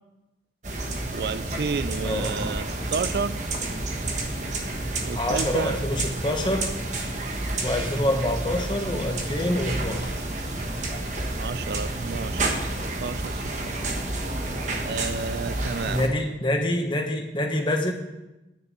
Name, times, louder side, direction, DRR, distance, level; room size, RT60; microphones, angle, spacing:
sound 1, 0.6-16.1, right 2 dB, 40° right, 1.3 m, -30 dB
voice 1, 1.1-3.4 5.0-5.7 11.3-13.8 14.8-16.1, right 5 dB, 60° right, 15 dB, 0.4 m, -31 dB
voice 2, 2.0-2.4 5.1-6.7 7.6-10.1 15.9-17.9, left 1 dB, 25° left, 3 dB, 1.2 m, -26 dB
9.9 x 6.5 x 8.3 m, 1.0 s
head